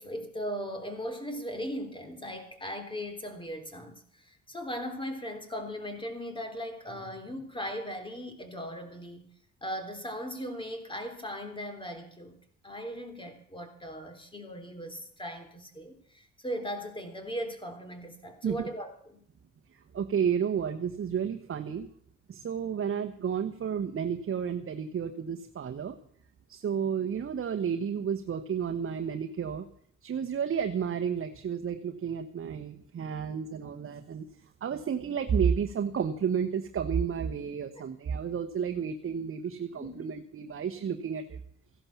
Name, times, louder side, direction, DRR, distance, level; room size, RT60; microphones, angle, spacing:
voice 1, 0.0-9.3 9.6-12.4 12.6-19.2 39.7-40.1, equal, 15° left, 7 dB, 3.5 m, -38 dB
voice 2, 19.9-21.9 22.3-26.0 26.5-29.6 30.0-34.3 34.6-41.4, right 7 dB, 45° right, 7 dB, 1.1 m, -31 dB
15.0 x 11.5 x 7.2 m, 0.64 s
cardioid pair, 90°, 30 cm